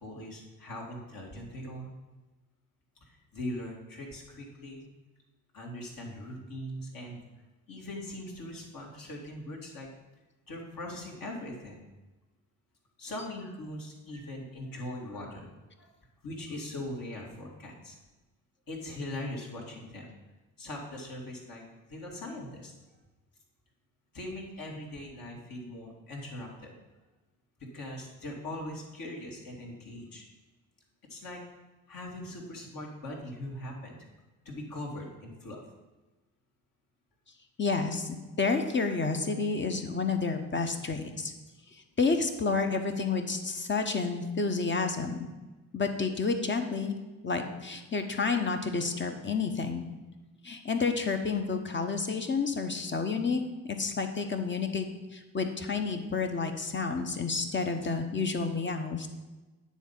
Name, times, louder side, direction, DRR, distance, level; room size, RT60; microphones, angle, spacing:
voice 1, 0.0-1.9 3.0-4.9 5.5-7.2 7.7-9.9 10.5-11.9 13.0-15.5 15.8-15.9 16.2-17.9 18.7-20.1 20.6-21.6 21.9-22.7 24.1-26.7 27.6-30.2 31.1-31.4 31.9-34.0 34.5-35.7, left 1 dB, 50° left, -1 dB, 2.2 m, -40 dB
voice 2, 37.6-41.3 42.0-45.3 45.7-46.9 47.2-49.9 50.4-53.4 53.8-59.1, left 4 dB, 25° left, 6 dB, 1.1 m, -30 dB
9.4 x 4.2 x 5.6 m, 1.2 s
figure-of-eight pair, 45°, 43 cm